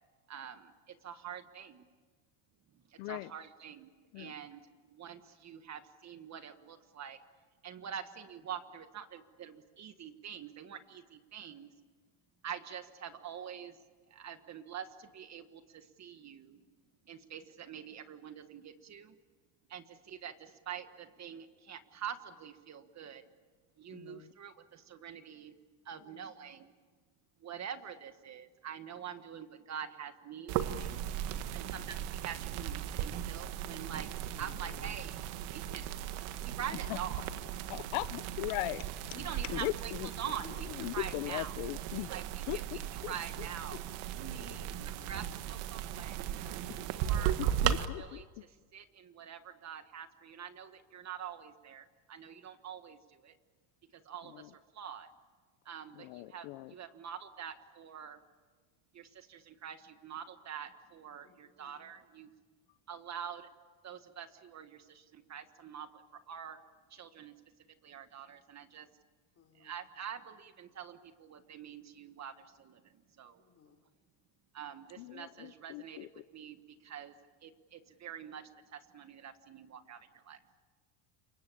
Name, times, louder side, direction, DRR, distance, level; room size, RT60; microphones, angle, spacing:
voice 1, 0.3-1.9 2.7-7.2 7.6-11.7 12.4-13.8 14.1-16.7 17.0-19.2 19.7-23.3 23.8-25.5 25.8-26.7 27.4-31.0 31.5-35.2 35.5-37.2 39.2-41.6 42.1-44.6 45.1-46.2 46.9-53.4 53.9-55.1 55.6-58.2 58.9-62.3 62.9-63.5 63.8-66.6 66.9-67.3 67.8-68.9 69.5-73.4 74.5-76.1 76.3-77.2 77.4-80.4, right 8 dB, 35° right, 10 dB, 1.5 m, -46 dB
voice 2, 3.0-3.3 4.1-4.3 23.9-24.3 36.9-37.0 37.7-40.1 40.8-42.1 42.5-43.1 47.4-48.4 54.3-54.5 55.9-56.7 75.0-76.1, left 20 dB, 75° left, 16 dB, 0.8 m, -39 dB
voice 3, 26.0-26.6 31.6-32.0 44.3-45.3 46.6-47.1 61.2-61.9 69.4-69.9 73.4-73.8, left 5 dB, 30° left, 5 dB, 3.9 m, -60 dB
sound 1, 30.5-47.9, right 10 dB, 75° right, 1.8 m, -37 dB
28.0 x 23.5 x 8.6 m, 1.4 s
cardioid pair, 140°, 50 cm